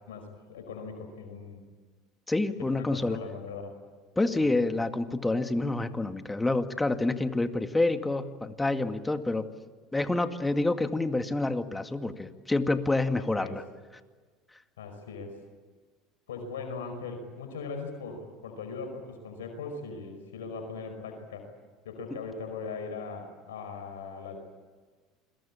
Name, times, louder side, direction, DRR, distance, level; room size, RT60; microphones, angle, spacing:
voice 1, 0.0-1.6 2.6-3.7 4.4-4.5 13.2-13.6 14.8-15.3 16.3-21.5 21.9-24.4, left 4 dB, 90° left, 5 dB, 5.2 m, -39 dB
voice 2, 2.3-3.2 4.2-9.5 9.9-13.6, left 2 dB, 10° left, 8 dB, 2.1 m, -28 dB
28.5 x 22.5 x 8.7 m, 1.4 s
hypercardioid pair, 85°, 0 cm